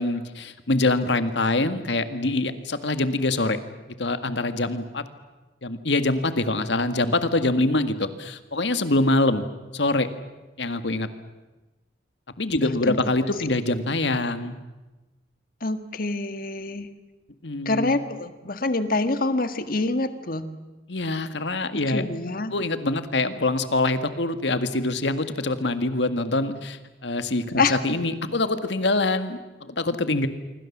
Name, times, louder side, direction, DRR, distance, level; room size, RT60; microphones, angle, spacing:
voice 1, 0.0-3.6 4.0-5.1 5.6-9.4 9.7-10.1 10.6-11.1 12.4-14.6 17.4-18.0 20.9-22.0 22.5-30.3, left 2 dB, 75° left, 10 dB, 1.8 m, -24 dB
voice 2, 12.6-13.0 15.6-16.9 17.6-20.5 21.7-22.5 27.6-27.8, left 3 dB, 50° left, 10 dB, 1.7 m, -26 dB
26.5 x 24.5 x 7.3 m, 1.1 s
head